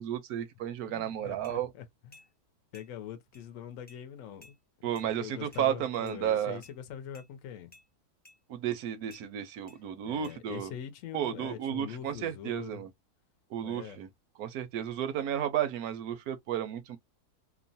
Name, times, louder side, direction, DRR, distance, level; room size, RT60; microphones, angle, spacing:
voice 1, 0.0-1.7 4.8-6.6 8.5-10.7 11.1-12.9 13.5-14.1 14.4-17.0, right 10 dB, 75° right, 1.0 m, -33 dB
voice 2, 0.9-2.2 2.7-4.9 5.2-7.7 10.1-12.8 13.6-14.0, left 9 dB, 70° left, 0.9 m, -43 dB
sound 1, 1.4-1.6 2.1-2.3 2.7-2.9 3.3-3.4 3.9-4.0 4.4-4.6 4.9-5.1 5.5-5.7 6.1-6.2 6.6-6.8 7.1-7.3 7.7-7.9 8.2-8.4 9.1-9.2 9.7-9.8 10.2-10.4, left 2 dB, 10° left, 0.4 m, -56 dB
3.0 x 2.0 x 2.6 m
omnidirectional pair, 1.7 m